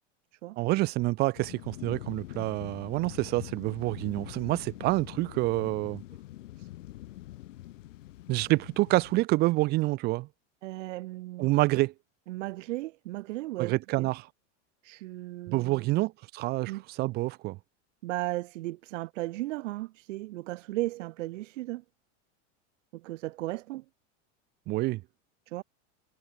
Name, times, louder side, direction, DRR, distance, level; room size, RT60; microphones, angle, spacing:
voice 1, 0.6-6.0 8.3-10.3 11.4-11.9 13.6-14.3 15.5-17.6 24.7-25.0, right 20 dB, 30° right, 0.4 m, -27 dB
sound 1, 1.4-9.2, left 15 dB, 85° left, 6.8 m, -44 dB
voice 2, 10.6-11.5 12.3-14.1 14.8-16.0 16.6-16.8 18.0-21.8 22.9-23.8 25.5-25.6, right 18 dB, 85° right, 1.0 m, -36 dB
supercardioid pair, 150°, 36 cm